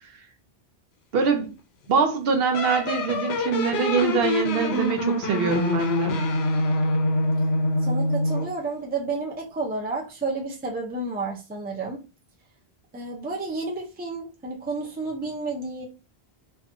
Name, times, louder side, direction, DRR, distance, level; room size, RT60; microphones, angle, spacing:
voice 1, 1.1-1.5 1.9-6.2, right 5 dB, 75° right, 0.8 m, -23 dB
sound 1, 2.5-8.6, left 1 dB, 85° left, 0.8 m, -25 dB
voice 2, 7.8-12.0 12.9-15.9, right 3 dB, 15° right, 0.4 m, -31 dB
2.6 x 2.3 x 2.5 m
omnidirectional pair, 1.0 m